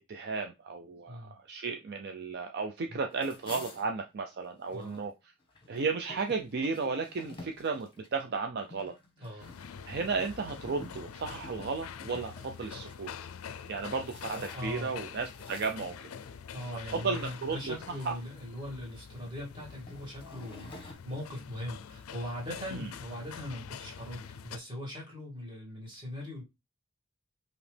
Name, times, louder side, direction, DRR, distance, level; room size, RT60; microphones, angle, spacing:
voice 1, 0.1-5.1 5.7-8.9 9.3-9.4 9.9-13.1 13.7-16.1 16.9-17.7 18.0-18.1 22.7-22.9, right 4 dB, 50° right, 0.5 m, -34 dB
voice 2, 1.1-1.4 4.6-5.1 9.2-9.5 14.3-15.0 16.5-26.4, left 1 dB, 25° right, 2.1 m, -40 dB
sound 1, 3.1-5.1 5.4-13.0 13.6-14.8 15.2-16.4 16.9-17.1 17.5-18.3 19.0-20.9, left 2 dB, 25° left, 1.2 m, -51 dB
sound 2, 9.4-24.6, left 7 dB, 85° left, 0.4 m, -46 dB
5.0 x 3.0 x 3.3 m
head